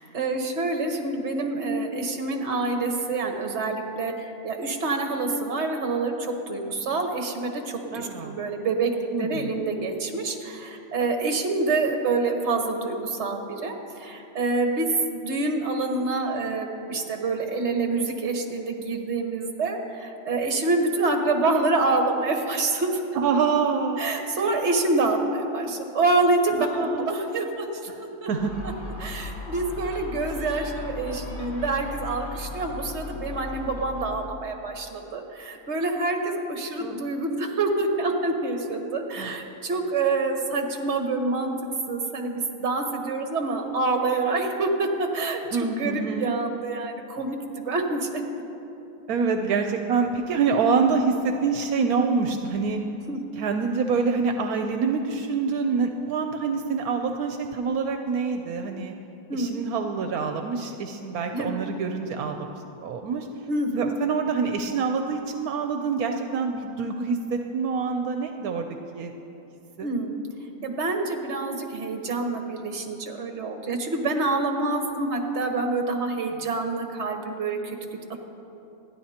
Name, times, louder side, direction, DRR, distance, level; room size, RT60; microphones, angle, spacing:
voice 1, 0.1-6.1 6.5-8.9 9.2-22.9 24.0-27.7 28.0-28.3 29.0-41.5 41.9-48.2 53.1-53.2 59.3-59.6 61.3-61.6 63.5-63.8 69.8-70.2 70.6-77.8, right 3 dB, 50° right, 3 dB, 1.5 m, -27 dB
voice 2, 7.9-8.3 9.1-9.5 23.1-24.0 26.6-27.1 27.9-28.0 28.3-28.5 36.8-37.0 39.2-39.3 45.5-46.3 49.1-52.8 53.4-58.9 59.3-62.5 62.8-63.3 63.8-68.7 68.9-69.1 69.8-69.9 76.1-76.2, right 5 dB, 80° right, 5 dB, 1.1 m, -26 dB
Gull seagull, 28.4-34.3, left 3 dB, 35° left, 1.5 m, -37 dB
27.5 x 10.5 x 2.9 m, 2.8 s
omnidirectional pair, 1.6 m